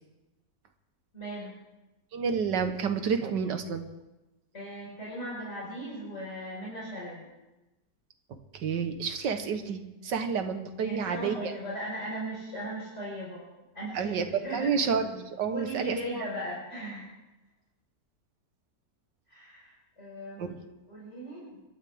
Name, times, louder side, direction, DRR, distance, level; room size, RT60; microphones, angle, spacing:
voice 1, 1.1-1.5 4.5-7.3 10.8-13.5 13.7-14.7 15.5-17.1 19.3-20.6 20.9-21.6, equal, 40° left, -7 dB, 5.2 m, -38 dB
voice 2, 2.1-3.9 8.5-11.5 13.9-16.3 20.4-20.6, right 6 dB, 90° right, 8 dB, 1.9 m, -30 dB
27.5 x 12.5 x 3.6 m, 1.0 s
omnidirectional pair, 1.8 m